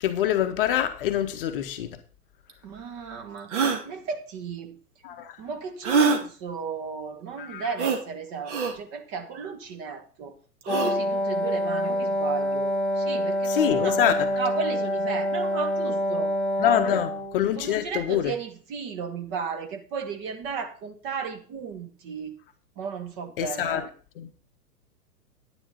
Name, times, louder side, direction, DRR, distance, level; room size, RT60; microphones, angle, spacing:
voice 1, 0.0-2.0 5.0-5.3 7.4-7.6 13.5-14.3 16.6-18.3 23.4-23.8 24.2-24.4, left 10 dB, 35° left, 1.0 m, -25 dB
sound 1, 2.5-2.6 3.5-3.8 5.8-6.2 7.8-8.0 8.5-8.7 10.6-10.9, right 5 dB, 45° right, 2.1 m, -23 dB
voice 2, 2.6-4.8 5.4-10.3 10.6-14.0 14.4-16.3 16.9-17.1 17.6-22.4 22.8-23.9, right 5 dB, 25° right, 1.4 m, -34 dB
Wind instrument woodwind instrument, 10.7-17.4, left 1 dB, ahead, 1.1 m, -26 dB
10.0 x 10.0 x 4.1 m
figure-of-eight pair, 110°, 48 cm